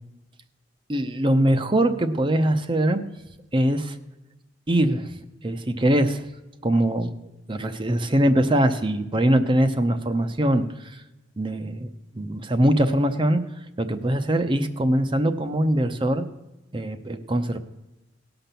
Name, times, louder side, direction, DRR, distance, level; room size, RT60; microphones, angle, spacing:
voice 1, 0.9-3.0 3.5-4.0 4.7-5.1 5.4-6.2 6.6-7.1 7.5-10.9 11.4-11.9 12.2-13.4 13.8-16.2 16.7-17.6, right 1 dB, 25° right, 8 dB, 0.7 m, -22 dB
17.5 x 5.9 x 6.8 m, 1.0 s
head